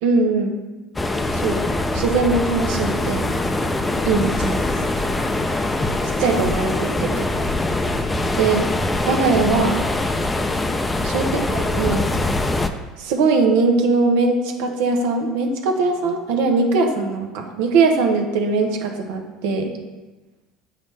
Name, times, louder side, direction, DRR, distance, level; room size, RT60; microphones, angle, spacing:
voice 1, 0.0-0.6 1.3-1.6 1.9-3.3 4.0-4.7 6.2-7.3 8.4-8.7 9.1-9.8 11.0-12.0 13.0-19.7, right 4 dB, 80° right, 3 dB, 0.9 m, -20 dB
sound 1, 1.0-12.7, left 2 dB, 15° left, 0.4 m, -23 dB
7.6 x 5.1 x 3.2 m, 1.2 s
supercardioid pair, 110°, 0 cm